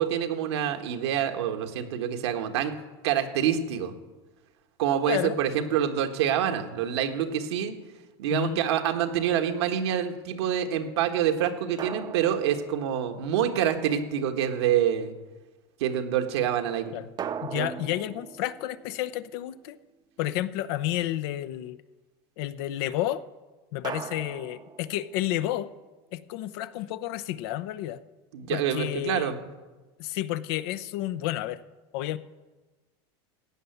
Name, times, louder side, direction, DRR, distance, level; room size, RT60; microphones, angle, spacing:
voice 1, 0.0-2.8 3.0-3.9 4.8-7.7 8.2-15.1 15.8-16.9 17.5-17.8 28.3-29.4, right 9 dB, 85° right, 5 dB, 1.4 m, -26 dB
voice 2, 5.1-5.4 8.3-8.6 16.9-17.1 17.4-19.8 20.2-21.8 22.4-23.2 23.7-25.7 26.1-28.0 28.5-29.3 30.0-31.6 31.9-32.2, left 13 dB, 70° left, 15 dB, 0.7 m, -31 dB
sound 1, 9.2-9.7 11.8-13.6 17.2-19.8 23.8-25.5, right 8 dB, 30° right, 0.7 m, -40 dB
15.5 x 5.7 x 9.2 m, 1.2 s
supercardioid pair, 115°, 14 cm